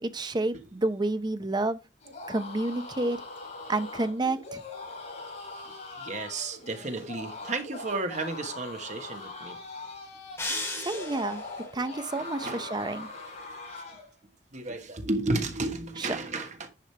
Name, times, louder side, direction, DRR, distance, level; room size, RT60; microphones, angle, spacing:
voice 1, 0.0-1.8 2.3-3.2 3.7-4.6 10.8-11.4 11.7-13.1 16.0-16.2, right 2 dB, 25° right, 0.7 m, -29 dB
sound 1, 2.0-14.1, left 3 dB, 45° left, 5.3 m, -41 dB
voice 2, 6.0-9.6 12.2-12.7 14.5-16.7, right 2 dB, 45° right, 1.4 m, -33 dB
sound 2, 10.4-11.6, left 2 dB, 15° left, 2.9 m, -34 dB
10.5 x 5.0 x 3.3 m
head